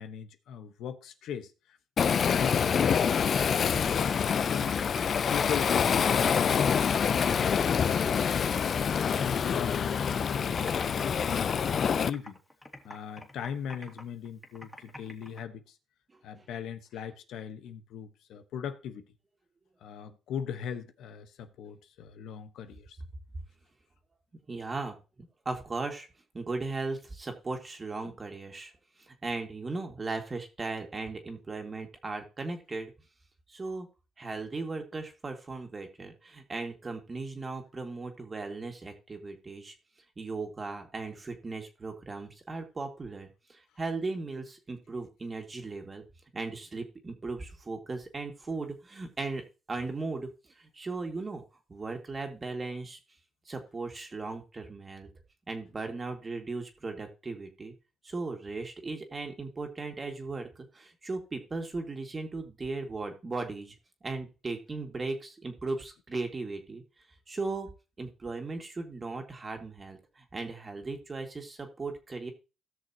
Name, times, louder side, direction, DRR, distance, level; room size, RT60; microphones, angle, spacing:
voice 1, 0.0-1.8 2.0-4.8 5.3-12.4 12.8-15.8 16.2-19.1 19.8-23.0 28.0-28.1, left 8 dB, 80° left, 1.1 m, -40 dB
Waves surf, 2.0-12.1, left 7 dB, 50° left, 0.5 m, -26 dB
Computer keyboard, 3.7-6.8 7.1-8.4 8.7-10.0 10.2-15.4, left 1 dB, 5° left, 2.3 m, -45 dB
voice 2, 24.5-26.1 26.3-28.7 29.1-32.9 33.5-33.9 34.2-39.7 40.2-46.0 46.3-49.4 49.7-50.3 50.6-51.4 51.7-53.0 53.5-55.1 55.5-57.7 58.0-63.8 64.0-66.8 67.3-67.7 68.0-72.3, right 3 dB, 30° right, 2.1 m, -37 dB
17.0 x 6.4 x 2.9 m
cardioid pair, 90°, 0 cm